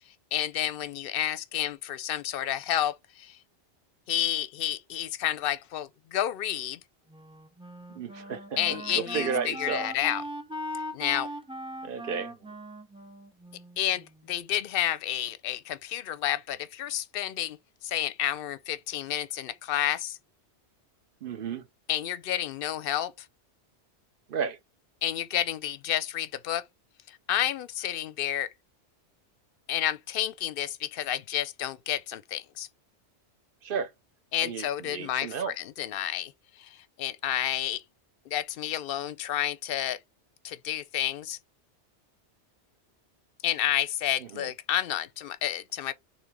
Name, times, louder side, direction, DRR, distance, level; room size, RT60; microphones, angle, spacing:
voice 1, 0.3-3.4 4.1-6.8 8.6-10.2 10.9-11.3 13.8-17.6 17.8-20.2 21.9-23.1 25.0-26.6 27.1-28.5 29.7-32.7 34.3-36.3 36.6-37.8 38.3-40.0 40.4-41.4 43.4-45.9, left 11 dB, 60° left, 0.7 m, -30 dB
Wind instrument woodwind instrument, 7.1-14.3, equal, 10° right, 0.3 m, -40 dB
voice 2, 7.9-9.9 11.8-12.5 21.2-21.7 24.3-24.6 33.6-33.9 34.4-35.5 44.2-44.5, right 6 dB, 55° right, 0.7 m, -33 dB
3.8 x 3.0 x 4.6 m
omnidirectional pair, 1.2 m